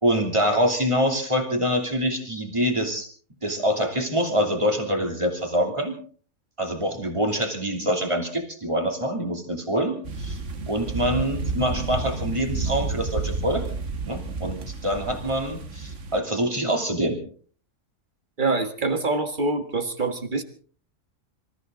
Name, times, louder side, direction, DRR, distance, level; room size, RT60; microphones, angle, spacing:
voice 1, 0.0-3.1 3.4-5.9 6.6-10.4 10.7-13.6 14.1-17.2, equal, 20° right, 3 dB, 3.1 m, -25 dB
sound 1, 10.0-16.2, right 3 dB, 65° right, 1.7 m, -31 dB
voice 2, 18.4-20.4, right 3 dB, 40° right, 8 dB, 1.7 m, -25 dB
26.0 x 14.5 x 3.8 m, 0.43 s
omnidirectional pair, 1.4 m